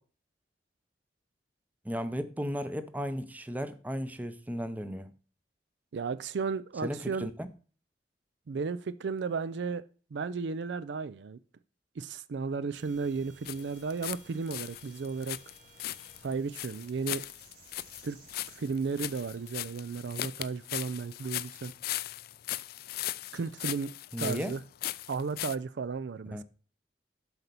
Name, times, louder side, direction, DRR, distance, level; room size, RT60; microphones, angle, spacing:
voice 1, 1.8-5.1 6.8-7.5 24.1-24.6 26.3-26.4, equal, 10° right, 0.6 m, -35 dB
voice 2, 5.9-7.3 8.5-9.8 10.1-11.4 12.0-15.4 16.2-17.3 18.0-18.2 18.5-21.7 23.3-23.9 24.2-24.6 25.1-26.4, right 5 dB, 70° right, 0.4 m, -34 dB
sound 1, 12.7-19.7, right 3 dB, 55° right, 2.9 m, -58 dB
Footsteps in forest close, 13.4-14.2 14.5-25.6, left 15 dB, 55° left, 0.3 m, -38 dB
8.0 x 4.3 x 6.8 m
head